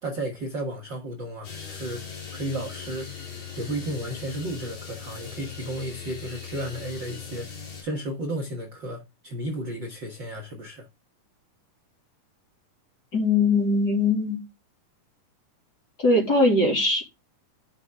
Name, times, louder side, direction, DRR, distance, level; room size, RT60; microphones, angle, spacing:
voice 1, 0.0-2.0 2.3-3.1 3.5-7.5 7.8-10.9, right 1 dB, 50° right, 1.6 m, -33 dB
sound 1, 1.4-7.8, left 7 dB, 85° left, 5.9 m, -39 dB
voice 2, 13.1-14.4 16.0-17.0, left 2 dB, 30° left, 3.2 m, -21 dB
11.0 x 6.1 x 3.6 m
omnidirectional pair, 3.8 m